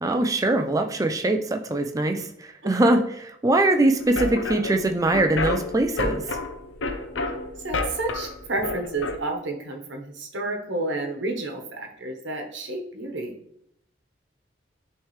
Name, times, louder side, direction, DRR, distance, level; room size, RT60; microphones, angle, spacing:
voice 1, 0.0-6.4, right 2 dB, 20° right, 6 dB, 0.4 m, -22 dB
sound 1, 4.0-9.2, left 2 dB, 85° left, 0.7 m, -30 dB
voice 2, 7.6-13.4, right 2 dB, 75° right, 2 dB, 1.0 m, -31 dB
9.5 x 3.3 x 3.2 m, 0.75 s
head